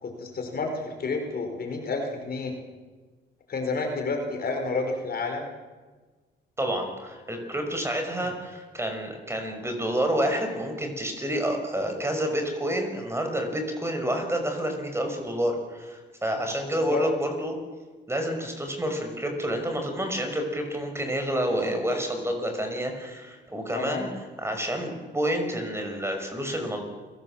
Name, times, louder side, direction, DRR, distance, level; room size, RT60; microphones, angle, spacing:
voice 1, 0.0-2.5 3.5-5.5 16.9-17.0 23.7-24.1, left 3 dB, 50° left, 4 dB, 5.1 m, -30 dB
voice 2, 6.6-17.6 18.1-26.9, equal, 15° right, 4 dB, 5.6 m, -29 dB
28.5 x 18.0 x 7.5 m, 1.3 s
cardioid pair, 90°, 20 cm